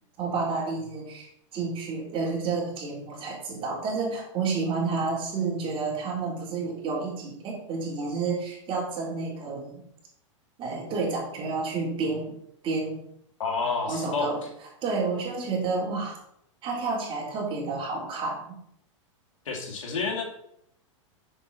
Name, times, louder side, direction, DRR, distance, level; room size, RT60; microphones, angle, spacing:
voice 1, 0.2-9.8 10.6-12.3 12.6-13.0 13.9-14.4 14.8-16.2 16.6-18.6, right 4 dB, 35° right, -3 dB, 3.5 m, -30 dB
voice 2, 13.4-14.3 19.5-20.2, left 4 dB, 75° left, 0 dB, 2.4 m, -29 dB
7.2 x 6.8 x 4.2 m, 0.73 s
hypercardioid pair, 120°, 16 cm